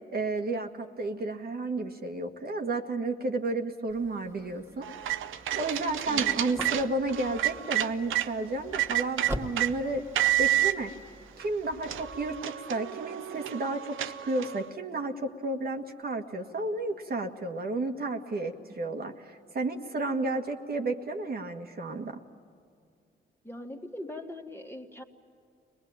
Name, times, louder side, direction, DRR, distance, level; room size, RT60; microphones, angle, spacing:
voice 1, 0.1-10.0 10.4-10.9 11.4-22.2, right 2 dB, 50° right, 3 dB, 1.8 m, -32 dB
sound 1, 3.9-12.4, equal, 10° right, 2.2 m, -44 dB
sound 2, 4.8-8.3 8.7-9.7 10.2-10.7 11.4-11.5 11.8-14.7, right 13 dB, 85° right, 0.7 m, -29 dB
voice 2, 6.1-6.4 23.4-25.0, left 1 dB, 10° left, 2 dB, 2.0 m, -41 dB
23.0 x 20.0 x 8.9 m, 2.4 s
cardioid pair, 70°, 20 cm